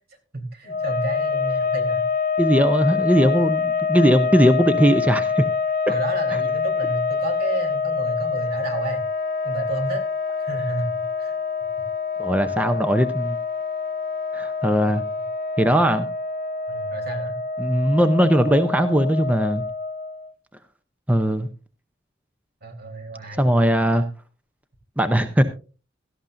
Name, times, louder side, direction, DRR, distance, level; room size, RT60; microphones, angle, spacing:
voice 1, 0.3-2.0 5.9-9.0 9.4-10.0 10.4-11.3 16.7-17.4 22.6-23.5, right 2 dB, 55° right, 4 dB, 3.7 m, -31 dB
sound 1, 0.7-20.3, left 5 dB, 50° left, 0.7 m, -26 dB
voice 2, 2.4-5.4 5.9-6.0 12.2-13.4 14.3-15.0 15.6-16.1 17.6-19.6 21.1-21.5 23.4-24.1 25.0-25.4, equal, 10° right, 9 dB, 0.7 m, -19 dB
17.0 x 13.0 x 2.6 m, 0.35 s
head